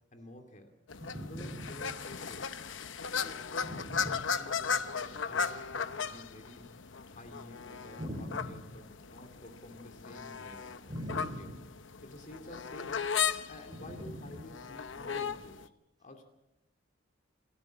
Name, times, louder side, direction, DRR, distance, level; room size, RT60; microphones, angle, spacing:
voice 1, 0.1-0.7 1.3-2.5 3.0-4.0 4.3-8.8 9.1-10.7 11.4-11.5 12.0-13.1 13.5-15.7 16.0-16.3, left 1 dB, 40° left, 5 dB, 2.6 m, -50 dB
sound 1, 0.9-15.7, left 6 dB, 70° left, 0.9 m, -37 dB
voice 2, 1.0-1.8 3.6-4.3 8.0-8.6 10.8-11.6 13.9-14.4, equal, 20° right, 4 dB, 4.5 m, -41 dB
28.5 x 13.0 x 7.5 m, 0.91 s
head